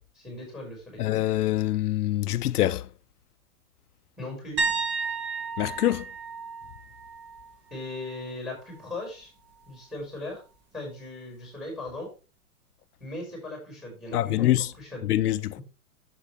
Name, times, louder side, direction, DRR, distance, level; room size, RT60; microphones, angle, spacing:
voice 1, 0.1-1.1 4.2-4.6 7.7-9.3 9.7-10.4 10.7-12.1 13.0-15.0 15.6-15.7, left 2 dB, ahead, 5.4 m, -38 dB
voice 2, 1.0-2.8 5.6-6.0 14.1-14.7 15.0-15.6, left 14 dB, 80° left, 0.6 m, -25 dB
sound 1, 4.6-8.3 8.6-9.0 11.9-12.0, right 4 dB, 25° right, 1.4 m, -33 dB
9.8 x 7.5 x 3.3 m
hypercardioid pair, 140°, 45 cm